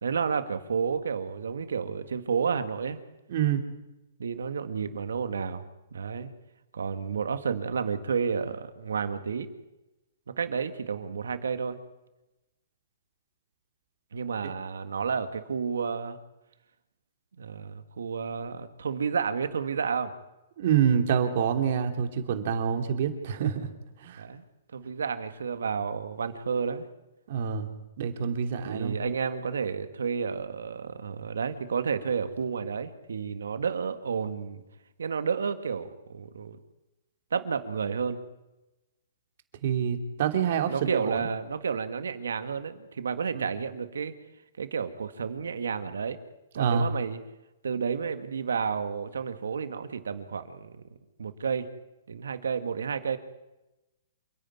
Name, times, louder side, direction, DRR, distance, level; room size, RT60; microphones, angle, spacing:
voice 1, 0.0-3.0 4.2-5.6 5.9-6.3 6.7-9.5 10.3-11.8 14.1-16.2 17.4-20.1 24.2-24.4 24.7-26.9 28.6-34.6 35.0-36.6 37.3-38.2 40.7-44.1 44.6-46.2 46.5-47.2 47.6-50.8 51.2-51.7 52.1-53.2, right 6 dB, 90° right, 10 dB, 1.9 m, -31 dB
voice 2, 3.3-3.6 20.6-23.7 24.0-24.3 27.3-27.7 28.0-29.0 39.6-41.2 43.3-43.5 46.5-46.9, right 8 dB, 55° right, 6 dB, 3.0 m, -27 dB
27.5 x 10.5 x 9.7 m, 0.99 s
hypercardioid pair, 150°, 0 cm